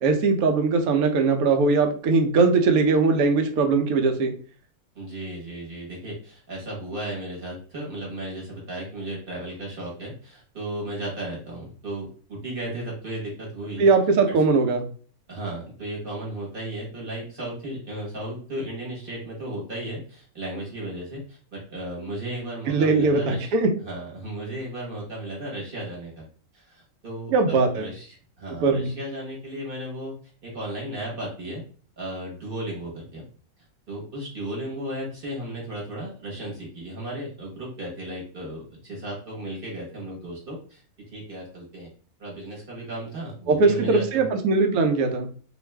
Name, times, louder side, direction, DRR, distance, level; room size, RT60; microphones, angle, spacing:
voice 1, 0.0-4.3 13.8-14.8 22.7-23.7 27.3-27.9 28.6-28.9 43.5-45.3, right 4 dB, 85° right, 5 dB, 1.1 m, -20 dB
voice 2, 4.9-13.9 15.3-23.5 23.8-26.3 26.5-30.1 30.4-31.6 32.0-33.2 33.9-40.8 41.1-41.9 42.2-44.3, right 1 dB, 40° right, -4 dB, 1.1 m, -35 dB
2.5 x 2.4 x 3.2 m, 0.43 s
omnidirectional pair, 1.5 m